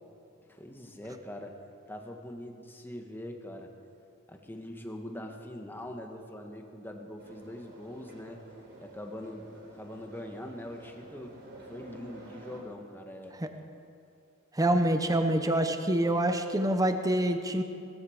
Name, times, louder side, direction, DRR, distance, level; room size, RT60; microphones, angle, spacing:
voice 1, 0.5-1.6 1.9-3.7 4.3-8.4 8.8-11.3 11.7-13.4, left 1 dB, 10° left, 3 dB, 1.3 m, -43 dB
sound 1, 7.2-12.6, right 1 dB, 50° right, 3.5 m, -50 dB
voice 2, 14.5-17.6, right 1 dB, 15° right, 7 dB, 0.8 m, -26 dB
18.5 x 13.5 x 5.0 m, 2.6 s
head